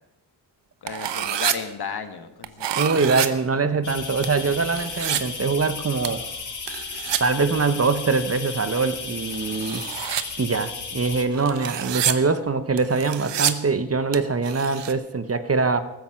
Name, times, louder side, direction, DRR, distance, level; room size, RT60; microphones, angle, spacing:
voice 1, 0.8-2.8, left 6 dB, 65° left, 9 dB, 1.6 m, -34 dB
sound 1, 0.9-1.6 2.4-3.3 4.2-5.2 6.0-6.3 6.7-7.2 9.1-10.2 11.1-12.1 12.8-13.5 14.1-14.2 14.4-14.9, right 10 dB, 90° right, 1.0 m, -27 dB
voice 2, 2.8-6.2 7.2-9.8 10.4-15.8, right 4 dB, 35° right, 12 dB, 1.0 m, -23 dB
sound 2, 3.8-11.3, left 5 dB, 45° left, 1.8 m, -34 dB
15.0 x 13.5 x 5.8 m, 1.0 s
cardioid pair, 80°, 42 cm